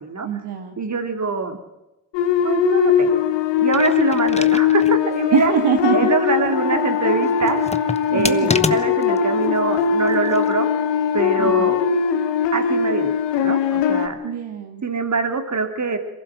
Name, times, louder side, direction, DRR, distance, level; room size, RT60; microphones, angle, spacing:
voice 1, 0.2-0.8 5.3-6.1 8.1-8.5 11.4-11.7 14.2-14.8, right 8 dB, 75° right, 4 dB, 1.9 m, -23 dB
voice 2, 0.8-1.6 2.4-3.2 3.6-5.5 5.9-7.6 8.1-10.7 11.1-11.8 12.5-13.1 13.4-14.2 14.8-16.0, right 4 dB, 45° right, 6 dB, 3.0 m, -23 dB
sound 1, 2.1-14.1, left 8 dB, 90° left, 1.3 m, -20 dB
sound 2, 3.6-5.0 5.4-5.5 7.4-9.2 10.1-10.5, left 3 dB, 15° left, 1.2 m, -27 dB
sound 3, 6.5-12.0, left 12 dB, 70° left, 2.6 m, -30 dB
22.5 x 15.5 x 7.6 m, 0.98 s
supercardioid pair, 50°, 41 cm